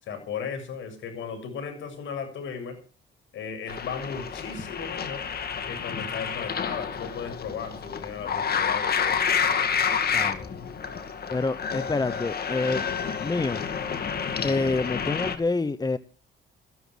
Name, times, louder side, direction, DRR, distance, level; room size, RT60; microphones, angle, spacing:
voice 1, 0.0-2.8 3.3-5.3 5.7-9.2, left 6 dB, 75° left, 5 dB, 6.9 m, -36 dB
sound 1, 3.7-15.4, left 6 dB, 50° left, 2.3 m, -29 dB
voice 2, 10.1-10.6 11.3-12.8 13.2-13.6 14.4-16.0, left 3 dB, 20° left, 14 dB, 0.9 m, -27 dB
15.0 x 12.5 x 6.2 m, 0.39 s
cardioid pair, 90°, 20 cm